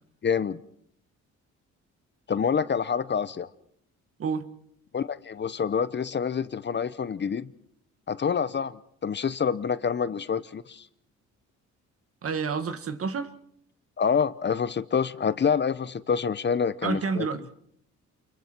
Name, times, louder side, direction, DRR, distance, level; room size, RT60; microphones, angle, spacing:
voice 1, 0.2-0.6 2.3-3.5 4.9-7.5 8.1-10.9 14.0-17.3, left 6 dB, 35° left, 15 dB, 0.8 m, -27 dB
voice 2, 12.2-13.3 16.8-17.5, right 5 dB, 50° right, 10 dB, 1.7 m, -29 dB
29.0 x 22.5 x 4.5 m, 0.67 s
cardioid pair, 90°, 30 cm